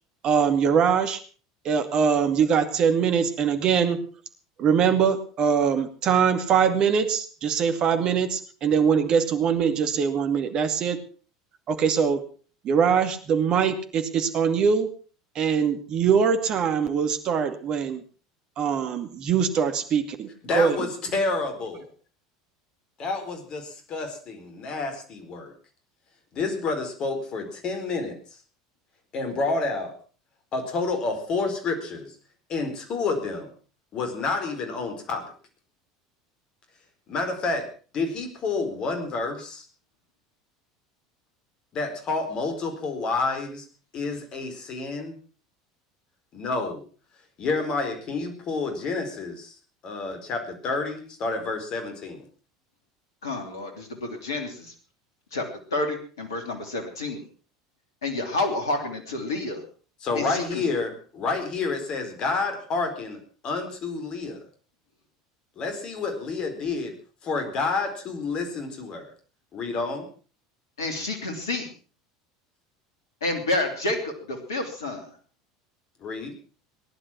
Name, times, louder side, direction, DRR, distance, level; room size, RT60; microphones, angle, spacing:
voice 1, 0.2-1.2 1.6-4.0 4.6-11.0 11.7-12.2 12.6-14.9 15.4-18.0 18.6-20.9, right 7 dB, 40° right, 8 dB, 2.3 m, -22 dB
voice 2, 20.4-21.9 23.0-25.5 26.3-28.2 29.1-29.9 30.5-32.1 32.5-33.5 33.9-35.2 37.1-37.7 37.9-39.6 41.7-43.6 43.9-45.1 46.3-46.8 47.4-49.5 49.8-52.2 60.0-64.4 65.6-66.9 67.2-69.1 69.5-70.1 76.0-76.3, left 3 dB, 40° left, 6 dB, 4.4 m, -29 dB
voice 3, 53.2-54.7 55.3-55.4 55.7-57.3 58.0-59.6 60.1-60.6 70.8-71.7 73.2-75.1, left 2 dB, 70° left, 5 dB, 3.1 m, -29 dB
19.0 x 11.0 x 5.9 m, 0.40 s
figure-of-eight pair, 70°, 2 cm